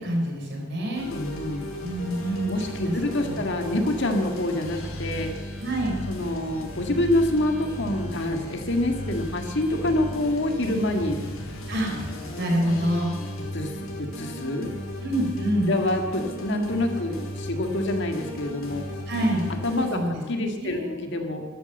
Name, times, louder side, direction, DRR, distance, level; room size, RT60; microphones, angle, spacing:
voice 1, 0.0-1.1 1.8-2.5 2.8-2.9 3.2-3.4 5.6-6.0 11.7-11.9 12.4-13.2 15.0-15.7 19.1-19.4 19.9-20.2 20.6-20.9, right 1 dB, 55° right, 0 dB, 4.5 m, -26 dB
sound 1, 0.9-19.9, equal, 75° left, 3.4 m, -36 dB
voice 2, 1.1-1.7 2.5-5.3 6.1-11.2 13.5-13.7 14.0-14.7 15.7-18.9 19.6-20.0 20.3-21.4, left 1 dB, 55° left, 4 dB, 1.9 m, -26 dB
13.5 x 12.5 x 7.8 m, 1.5 s
head